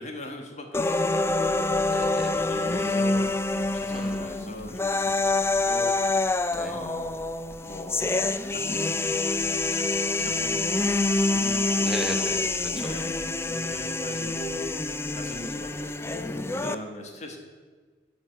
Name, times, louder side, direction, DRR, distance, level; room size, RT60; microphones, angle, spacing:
voice 1, 0.0-1.8 2.4-7.2 7.6-8.1 8.5-9.1 9.7-9.9 10.2-11.0 11.3-12.1 12.7-14.7 15.1-17.4, left 1 dB, 40° left, 3 dB, 1.6 m, -40 dB
sound 1, 0.7-16.8, left 2 dB, 15° left, 0.4 m, -26 dB
sound 2, 1.3-16.5, left 1 dB, 60° left, 1.3 m, -50 dB
voice 2, 1.9-2.4 3.9-4.5 6.5-6.8 11.8-12.9, equal, ahead, 1 dB, 1.2 m, -36 dB
9.9 x 6.0 x 7.8 m, 1.4 s
head